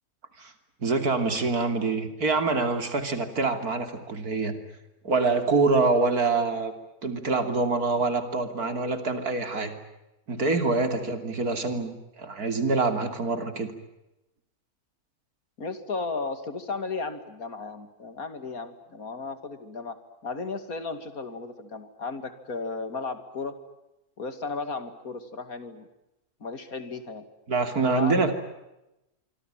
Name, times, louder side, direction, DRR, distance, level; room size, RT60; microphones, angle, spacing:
voice 1, 0.8-4.6 5.0-6.7 7.0-9.8 10.3-13.7 27.5-28.3, right 3 dB, 90° right, 8 dB, 3.5 m, -25 dB
voice 2, 15.6-20.0 20.2-23.6 24.2-25.9 26.4-27.3 27.8-28.3, left 4 dB, 70° left, 10 dB, 3.0 m, -34 dB
26.0 x 25.5 x 9.0 m, 0.94 s
omnidirectional pair, 1.6 m